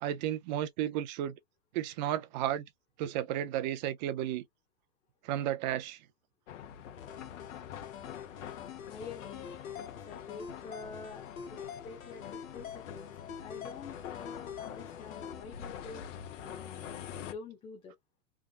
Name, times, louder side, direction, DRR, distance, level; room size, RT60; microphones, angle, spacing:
voice 1, 0.0-1.4 1.7-2.7 3.0-4.4 5.2-6.0, right 11 dB, 35° right, 0.6 m, -33 dB
sound 1, 6.5-17.3, left 9 dB, 65° left, 1.2 m, -46 dB
sound 2, 7.0-15.4, left 8 dB, 85° left, 1.5 m, -46 dB
voice 2, 8.9-13.1 13.4-16.1 16.4-16.9 17.2-17.9, left 4 dB, 15° left, 0.8 m, -47 dB
3.6 x 3.5 x 2.5 m
supercardioid pair, 150°, 40 cm